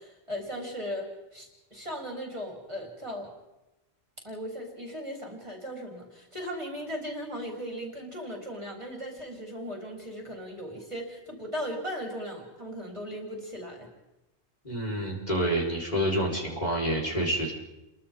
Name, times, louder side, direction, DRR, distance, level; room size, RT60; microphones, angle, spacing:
voice 1, 0.0-3.3 4.2-13.9, equal, 25° right, -1 dB, 4.0 m, -37 dB
voice 2, 14.6-17.5, right 1 dB, 35° left, -3 dB, 4.5 m, -28 dB
30.0 x 23.0 x 3.8 m, 0.96 s
omnidirectional pair, 1.2 m